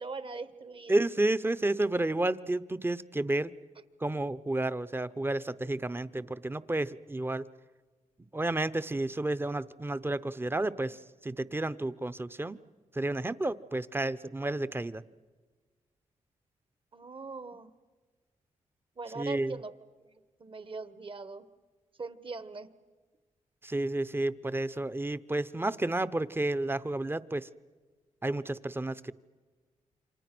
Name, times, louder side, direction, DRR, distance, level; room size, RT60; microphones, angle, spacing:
voice 1, 0.0-0.9 16.9-17.7 19.0-19.7 20.4-21.4 22.0-22.7, right 3 dB, 40° right, 13 dB, 1.4 m, -41 dB
voice 2, 0.9-3.5 4.0-7.5 8.3-12.6 12.9-15.0 19.1-19.6 23.6-27.5 28.2-29.1, right 2 dB, 15° right, 14 dB, 0.8 m, -31 dB
28.5 x 25.0 x 6.2 m, 1.4 s
cardioid pair, 65°, 13 cm